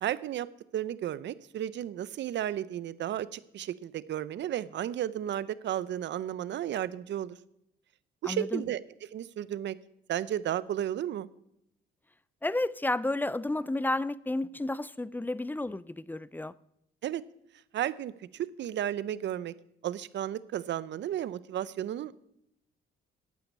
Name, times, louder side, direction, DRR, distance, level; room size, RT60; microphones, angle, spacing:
voice 1, 0.0-0.5 0.7-7.4 8.2-8.8 9.1-9.8 10.1-11.3 17.0-17.2 17.7-19.5 19.8-22.2, right 11 dB, 65° right, 0.6 m, -33 dB
voice 2, 8.2-8.6 12.4-16.5, left 2 dB, 10° left, 0.4 m, -31 dB
9.4 x 8.6 x 8.5 m
cardioid pair, 90°, 20 cm